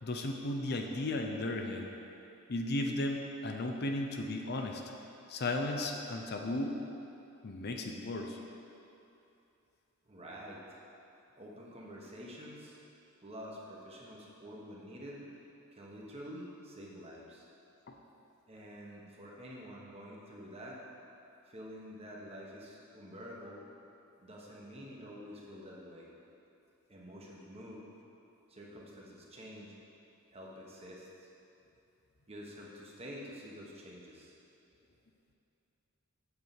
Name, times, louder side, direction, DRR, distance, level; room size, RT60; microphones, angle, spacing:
voice 1, 0.0-1.9 2.5-4.8 5.3-6.8 7.4-8.4 17.9-18.0, left 2 dB, 50° left, 3 dB, 0.6 m, -35 dB
voice 2, 10.1-10.8 11.4-12.8 13.2-15.2 15.7-17.5 18.5-20.8 21.5-23.6 24.2-26.1 26.9-27.8 28.5-29.7 30.3-31.1 32.3-34.3, equal, 30° right, -3 dB, 1.3 m, -48 dB
8.1 x 4.8 x 7.2 m, 2.8 s
head